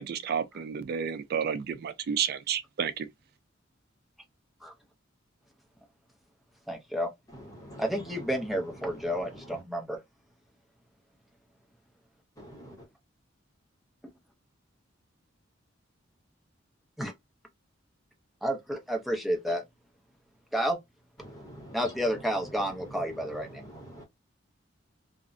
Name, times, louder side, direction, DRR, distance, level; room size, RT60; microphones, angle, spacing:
voice 1, 0.0-3.1, right 7 dB, 55° right, 0.3 m, -31 dB
voice 2, 6.7-7.1 7.8-10.0 17.0-17.1 18.4-19.6 20.5-20.8 21.7-23.5, equal, ahead, 0.5 m, -30 dB
voice 3, 12.4-12.8 21.2-21.8 23.7-24.0, equal, 20° left, 0.9 m, -46 dB
2.6 x 2.0 x 2.4 m
head